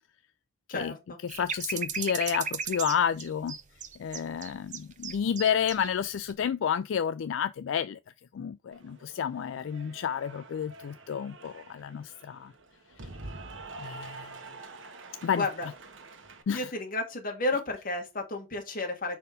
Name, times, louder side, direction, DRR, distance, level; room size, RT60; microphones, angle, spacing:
voice 1, 0.7-1.2 15.4-15.7 16.5-19.2, left 2 dB, 45° left, 1.9 m, -32 dB
voice 2, 1.2-3.6 4.0-8.0 8.3-12.5 13.8-14.3 15.2-15.4 16.5-16.7, left 8 dB, 75° left, 0.3 m, -30 dB
sound 1, 1.3-5.9 6.2-6.3, right 7 dB, 40° right, 0.7 m, -35 dB
Cheering / Applause, 8.7-16.4, right 3 dB, 70° right, 1.2 m, -47 dB
5.4 x 4.3 x 5.1 m
head